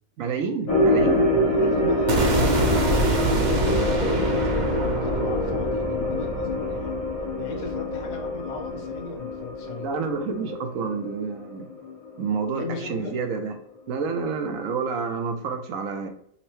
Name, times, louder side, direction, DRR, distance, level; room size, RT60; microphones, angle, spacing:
voice 1, 0.2-1.3 9.8-11.7 12.2-13.5 13.9-16.1, right 5 dB, 80° right, 5 dB, 1.1 m, -29 dB
sound 1, 0.7-13.2 13.5-13.6 14.2-14.3, left 1 dB, 85° left, 1.7 m, -26 dB
voice 2, 0.7-7.0 7.4-9.9 12.5-13.4, left 4 dB, 45° left, 2 dB, 0.6 m, -37 dB
sound 2, 2.1-8.1, right 2 dB, 45° right, 0.7 m, -26 dB
5.5 x 2.1 x 3.0 m, 0.67 s
omnidirectional pair, 1.4 m